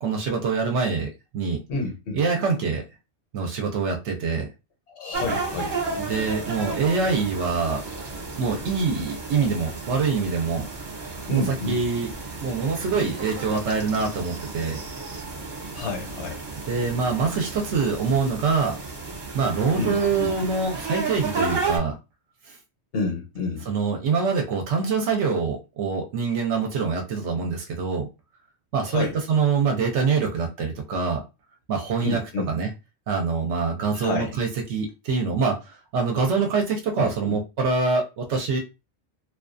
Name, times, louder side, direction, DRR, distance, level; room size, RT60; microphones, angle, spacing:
voice 1, 0.0-1.6 2.1-2.8 3.3-4.5 6.1-7.8 8.4-10.6 11.3-11.4 11.7-12.1 12.4-14.8 16.7-18.7 19.3-22.0 23.7-28.1 28.7-31.2 31.7-32.2 32.5-32.7 33.1-35.5 35.9-38.6, right 5 dB, 70° right, 0.8 m, -24 dB
voice 2, 1.7-2.2 4.9-5.8 11.3-11.8 15.7-16.4 19.7-20.3 22.9-23.7 28.8-29.2 32.0-32.5 33.9-34.3 37.0-37.4, left 3 dB, 65° left, 1.1 m, -29 dB
sound 1, 5.1-21.8, right 4 dB, 45° right, 0.9 m, -33 dB
2.4 x 2.3 x 2.4 m
omnidirectional pair, 1.3 m